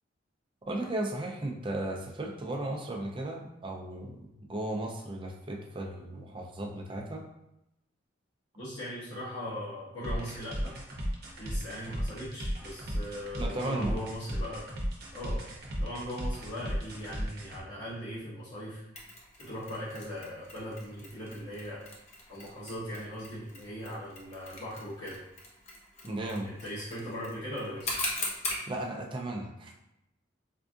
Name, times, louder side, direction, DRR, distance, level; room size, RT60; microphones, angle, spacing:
voice 1, 0.7-7.2 13.4-14.0 26.0-26.5 28.7-29.7, right 1 dB, 25° right, 1 dB, 0.4 m, -35 dB
voice 2, 8.5-10.8 11.4-14.7 15.1-15.4 15.8-18.8 19.4-21.8 22.3-25.2 26.4-27.9, equal, 70° left, -13 dB, 1.2 m, -39 dB
sound 1, 10.0-17.6, equal, 55° right, 0.8 m, -35 dB
Mechanisms, 19.0-28.7, left 2 dB, 35° left, 0.7 m, -41 dB
4.3 x 2.4 x 2.6 m, 0.87 s
head